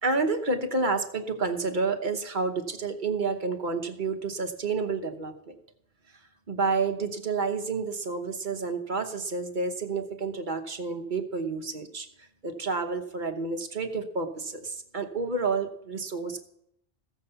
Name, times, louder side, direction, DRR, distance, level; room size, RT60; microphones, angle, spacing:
voice 1, 0.0-5.6 6.5-16.4, right 4 dB, 45° right, 6 dB, 1.1 m, -30 dB
15.5 x 7.0 x 6.8 m, 0.74 s
omnidirectional pair, 1.2 m